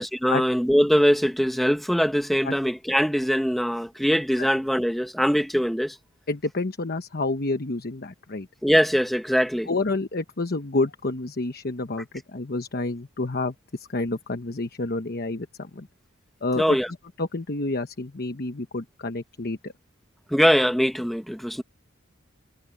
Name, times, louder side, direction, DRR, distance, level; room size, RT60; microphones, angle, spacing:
voice 1, 0.0-5.9 8.6-9.7 16.6-16.9 20.3-21.6, equal, ahead, 1.3 m, -22 dB
voice 2, 6.3-8.5 9.7-15.9 16.4-16.8 17.2-19.7, left 2 dB, 50° left, 1.0 m, -29 dB
head